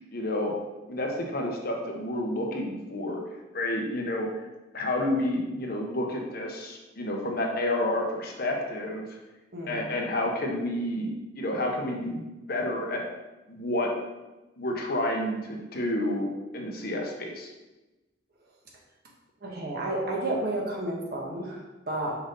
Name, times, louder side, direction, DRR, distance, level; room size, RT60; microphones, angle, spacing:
voice 1, 0.1-0.5 0.9-3.2 3.5-4.3 4.7-9.0 9.7-13.0 13.5-13.9 14.6-16.3 16.5-17.5, left 1 dB, 50° left, 0 dB, 1.1 m, -30 dB
voice 2, 9.5-9.8 19.4-22.2, right 1 dB, 55° right, -1 dB, 1.4 m, -31 dB
5.9 x 5.5 x 3.9 m, 1.1 s
head